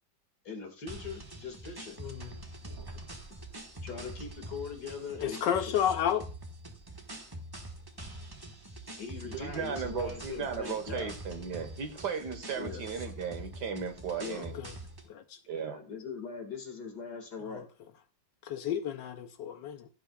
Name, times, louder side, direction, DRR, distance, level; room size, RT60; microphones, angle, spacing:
voice 1, 0.4-2.0 3.8-5.8 9.0-11.2 12.6-12.8 14.2-14.5 15.5-17.7, left 5 dB, 55° left, 2.5 m, -41 dB
sound 1, 0.9-15.1, right 1 dB, 15° right, 1.2 m, -44 dB
voice 2, 2.0-2.3 5.2-6.2 14.6-14.7 15.1-15.4 17.5-17.6 18.4-19.9, left 9 dB, 75° left, 1.3 m, -31 dB
voice 3, 9.2-14.6 15.5-15.8, right 6 dB, 60° right, 1.8 m, -36 dB
16.0 x 8.7 x 2.3 m
omnidirectional pair, 2.1 m